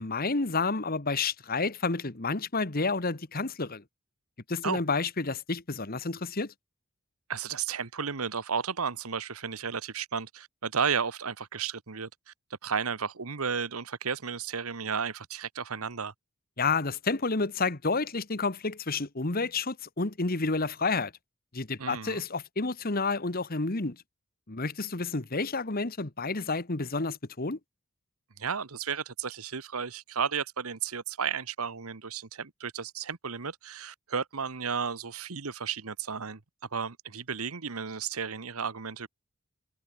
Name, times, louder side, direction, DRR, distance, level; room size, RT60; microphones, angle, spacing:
voice 1, 0.0-3.8 4.5-6.5 16.6-21.1 21.5-24.0 24.5-27.6, left 3 dB, 45° left, 1.5 m, -30 dB
voice 2, 7.3-12.3 12.6-16.1 21.8-22.2 28.4-36.4 36.7-39.1, right 6 dB, 90° right, 1.2 m, -33 dB
head